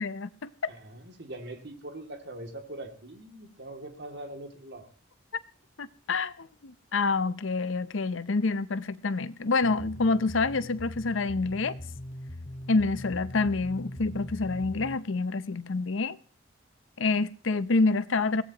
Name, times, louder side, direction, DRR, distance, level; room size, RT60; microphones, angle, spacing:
voice 1, 0.0-0.5 5.8-11.7 12.7-16.2 17.0-18.4, left 3 dB, 80° left, 0.7 m, -27 dB
voice 2, 0.7-4.9, right 1 dB, 55° right, 2.5 m, -42 dB
sound 1, 9.6-15.0, left 1 dB, 35° left, 1.6 m, -41 dB
23.0 x 17.5 x 3.0 m
head